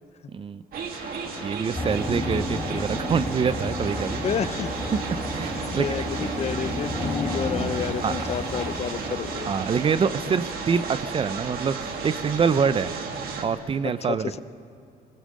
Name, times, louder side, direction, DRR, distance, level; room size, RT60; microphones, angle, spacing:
voice 1, 0.3-0.6 1.4-4.2 4.9-6.3 8.0-8.2 9.5-12.9 13.4-14.4, right 6 dB, 30° right, 15 dB, 0.5 m, -26 dB
sound 1, 0.7-13.5, right 5 dB, 60° right, 2.4 m, -33 dB
sound 2, 0.9-12.3, left 4 dB, 70° left, 3.9 m, -48 dB
sound 3, 1.7-9.5, left 2 dB, 15° left, 1.6 m, -32 dB
voice 2, 4.2-4.7 5.8-9.5 13.8-14.4, left 7 dB, 40° left, 14 dB, 0.7 m, -30 dB
21.5 x 20.5 x 6.5 m, 2.4 s
cardioid pair, 110°, 17 cm